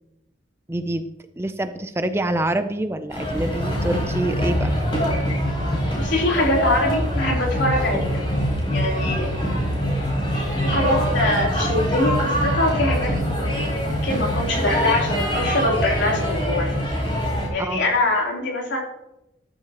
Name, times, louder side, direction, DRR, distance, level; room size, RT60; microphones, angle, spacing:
voice 1, 0.7-1.1 1.4-4.7 17.6-18.0, right 1 dB, 15° right, 9 dB, 0.4 m, -26 dB
sound 1, 3.1-17.5, equal, 25° left, 3.8 m, -24 dB
voice 2, 6.0-8.2 8.7-9.3 10.6-16.8 17.5-18.8, left 1 dB, 70° left, -2 dB, 3.3 m, -23 dB
13.5 x 11.0 x 2.9 m, 0.90 s
head